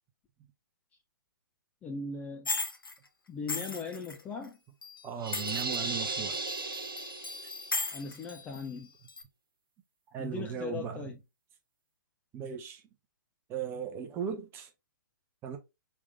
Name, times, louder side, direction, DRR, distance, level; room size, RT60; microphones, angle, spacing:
voice 1, 1.8-2.5 3.3-4.6 7.9-8.9 10.2-11.2, left 4 dB, 15° left, 0.4 m, -39 dB
sound 1, 2.4-2.9 3.5-4.4 4.8-6.0 6.3-8.7 9.1-9.2, left 3 dB, 80° left, 0.8 m, -37 dB
voice 2, 5.0-6.4 10.1-11.1 12.3-12.8 13.5-14.7 15.4-15.6, right 7 dB, 20° right, 0.8 m, -37 dB
sound 2, 5.2-7.8, right 3 dB, 75° right, 0.7 m, -36 dB
4.7 x 3.5 x 2.6 m
figure-of-eight pair, 125°, 12 cm